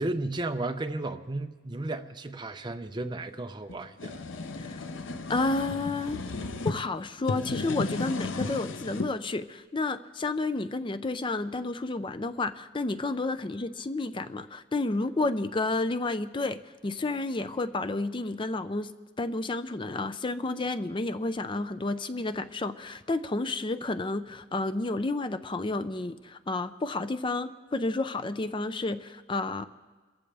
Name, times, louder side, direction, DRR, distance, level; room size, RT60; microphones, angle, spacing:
voice 1, 0.0-4.2, right 2 dB, 25° right, 0.7 m, -34 dB
sound 1, 3.7-6.8 7.2-9.1, left 3 dB, 90° left, 0.7 m, -34 dB
voice 2, 5.3-6.2 6.6-18.9 19.2-29.7, left 2 dB, 25° left, 0.5 m, -31 dB
27.0 x 15.0 x 3.4 m
head